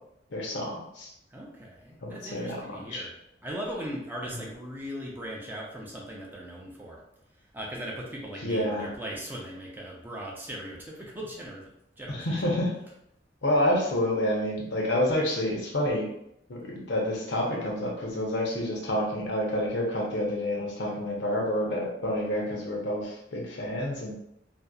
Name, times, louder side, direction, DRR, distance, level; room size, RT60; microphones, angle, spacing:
voice 1, 0.3-1.1 2.0-2.6 2.9-3.0 4.3-4.4 8.4-8.9 12.1-12.7 13.4-16.1 16.5-24.1, left 1 dB, 75° left, -2 dB, 0.7 m, -28 dB
voice 2, 1.3-3.1 3.4-7.0 7.5-11.7 12.0-12.5, equal, 10° right, -3 dB, 0.5 m, -39 dB
2.6 x 2.0 x 2.3 m, 0.77 s
head